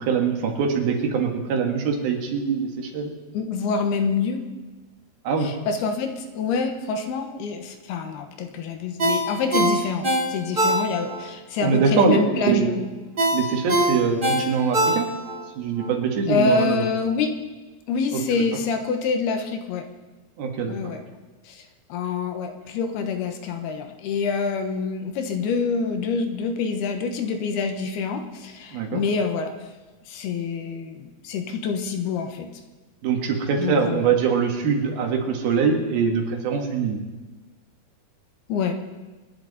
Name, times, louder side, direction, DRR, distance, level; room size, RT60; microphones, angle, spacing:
voice 1, 0.0-3.1 5.3-5.5 11.6-12.8 13.3-15.1 15.6-16.9 18.1-18.2 20.4-20.9 28.7-29.0 33.0-37.0, right 6 dB, 70° right, 3 dB, 3.4 m, -23 dB
voice 2, 3.3-4.5 5.4-12.8 16.3-17.3 17.9-19.8 20.7-21.0 21.5-29.6 30.1-32.5 33.6-34.1 38.5-38.8, left 5 dB, 80° left, 6 dB, 3.1 m, -26 dB
Ringtone, 9.0-11.2 11.6-11.7 13.2-15.4 15.8-15.9, right 1 dB, 90° right, 0.4 m, -22 dB
25.5 x 11.0 x 4.1 m, 1.2 s
omnidirectional pair, 4.7 m